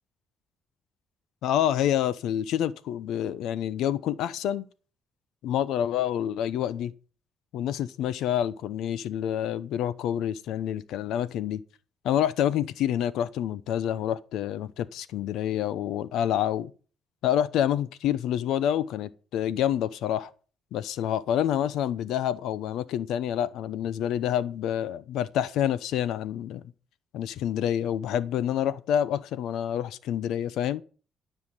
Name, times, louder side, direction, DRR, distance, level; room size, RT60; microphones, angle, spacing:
voice 1, 1.4-4.7 5.4-6.9 7.5-11.6 12.0-16.7 17.2-20.3 20.7-26.6 27.1-30.8, left 10 dB, 85° left, 0.8 m, -27 dB
12.5 x 5.8 x 8.8 m
cardioid pair, 90°, 0 cm